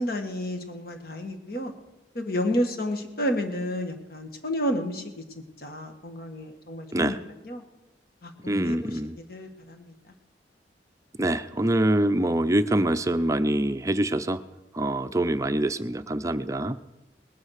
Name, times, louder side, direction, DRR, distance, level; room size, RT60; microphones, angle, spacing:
voice 1, 0.0-1.7 2.2-5.2 5.6-7.2 7.4-7.6 8.2-8.9 9.3-9.8, equal, 55° left, 5 dB, 1.7 m, -30 dB
voice 2, 8.5-9.2 11.2-14.4 14.7-16.8, right 1 dB, 20° right, 10 dB, 0.5 m, -25 dB
19.5 x 9.7 x 6.5 m, 0.99 s
head